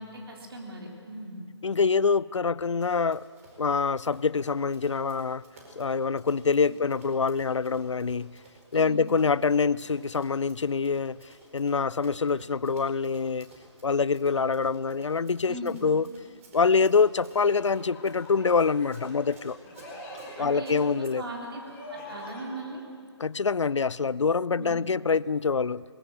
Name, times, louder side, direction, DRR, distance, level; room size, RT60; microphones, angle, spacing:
voice 1, 0.0-1.4 8.7-9.0 15.5-15.8 20.4-21.6 21.9-22.8 24.6-24.8, right 1 dB, 55° right, 1 dB, 4.0 m, -39 dB
voice 2, 1.6-3.3 3.6-5.4 5.8-8.3 8.7-11.2 11.5-13.5 13.8-16.0 16.5-19.6 20.4-21.2 23.2-25.8, left 5 dB, 75° left, 21 dB, 0.5 m, -25 dB
Run, 2.8-20.8, right 2 dB, 30° right, 4.8 m, -55 dB
sound 1, 17.3-22.5, left 1 dB, 15° left, 4.6 m, -45 dB
21.5 x 20.0 x 7.9 m, 2.2 s
figure-of-eight pair, 155°, 15 cm